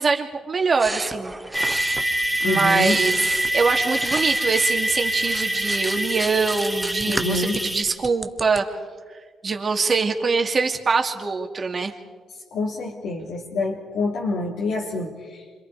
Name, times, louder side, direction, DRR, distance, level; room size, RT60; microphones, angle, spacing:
voice 1, 0.0-1.3 2.4-3.2 3.5-8.7 9.4-11.9, right 4 dB, 40° right, 3 dB, 2.6 m, -23 dB
sound 1, 0.8-4.7 5.1-8.6, right 1 dB, 10° right, 1.1 m, -33 dB
sound 2, 1.5-7.8, right 1 dB, 5° left, 2.5 m, -25 dB
voice 2, 2.4-3.0 7.1-7.6 12.5-15.4, left 2 dB, 80° left, -4 dB, 3.0 m, -26 dB
28.0 x 26.0 x 4.9 m, 1.5 s
cardioid pair, 90°, 0 cm